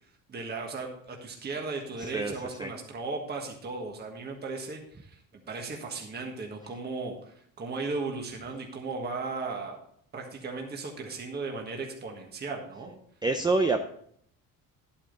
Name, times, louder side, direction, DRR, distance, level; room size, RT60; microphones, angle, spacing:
voice 1, 0.3-5.2 5.5-9.8 10.1-12.9, right 3 dB, 30° right, 1 dB, 1.6 m, -36 dB
voice 2, 2.0-2.3 2.6-2.7 13.2-13.8, right 3 dB, 15° right, 6 dB, 0.5 m, -26 dB
11.0 x 8.7 x 3.9 m, 0.64 s
cardioid pair, 140°, 34 cm